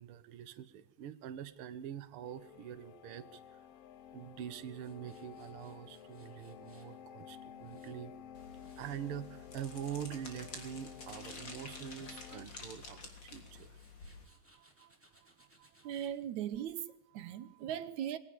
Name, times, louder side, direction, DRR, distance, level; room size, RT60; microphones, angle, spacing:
voice 1, 0.0-3.6 4.1-8.1 8.8-13.8 14.3-15.9 17.2-17.7, right 10 dB, 55° right, 1.9 m, -45 dB
sound 1, 2.2-12.5, left 9 dB, 65° left, 1.7 m, -53 dB
Tools, 4.8-6.9 7.4-9.1 9.5-10.1 10.6-11.2 11.5-16.1, right 1 dB, 5° right, 4.5 m, -68 dB
sound 2, 8.3-14.3, left 3 dB, 40° left, 3.7 m, -50 dB
voice 2, 15.8-18.2, right 10 dB, 80° right, 2.4 m, -39 dB
21.5 x 17.5 x 6.9 m
omnidirectional pair, 3.3 m